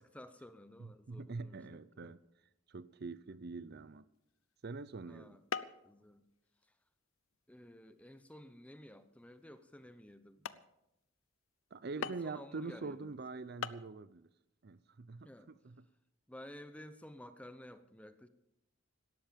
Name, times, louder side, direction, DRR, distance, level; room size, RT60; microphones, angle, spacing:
voice 1, 0.0-1.6 1.9-2.1 5.1-5.4 5.8-6.2 6.6-6.8 7.5-10.6 12.0-13.2 15.2-15.5 16.3-18.3, left 1 dB, 5° left, 10 dB, 0.7 m, -53 dB
voice 2, 0.8-2.2 2.7-4.1 4.6-5.4 11.7-14.3 14.6-15.8, right 3 dB, 50° right, 16 dB, 0.5 m, -44 dB
sound 1, 4.3-4.6 5.5-5.9 6.3-6.7 7.3-7.4 8.0-8.2 8.8-8.9 9.5-9.6 10.0-10.1 10.4-10.7 12.0-12.4 13.3-13.4 13.6-13.9, left 6 dB, 75° left, 0.7 m, -42 dB
18.0 x 13.0 x 5.2 m, 0.86 s
head